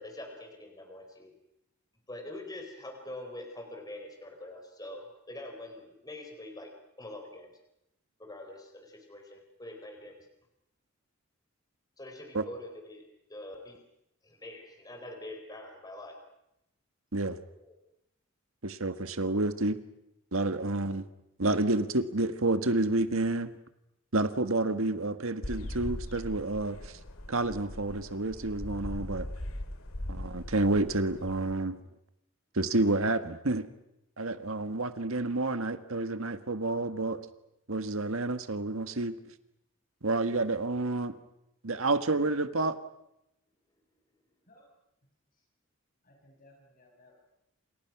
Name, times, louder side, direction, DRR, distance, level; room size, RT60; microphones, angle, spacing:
voice 1, 0.0-1.3 2.1-7.5 8.2-10.3 12.0-13.8 14.2-16.2 17.5-17.8, left 1 dB, 15° left, 4 dB, 4.1 m, -45 dB
voice 2, 18.6-19.8 20.3-21.0 21.4-23.5 24.1-27.0 27.3-29.3 30.1-31.8 32.5-33.7 34.2-37.2 37.7-39.1 40.0-41.2 41.6-42.8, right 2 dB, 75° right, 9 dB, 1.7 m, -29 dB
sound 1, 25.4-31.5, left 1 dB, 80° left, 2.1 m, -40 dB
voice 3, 46.0-47.1, left 1 dB, 40° left, 0 dB, 5.5 m, -60 dB
28.5 x 28.0 x 6.1 m, 0.82 s
head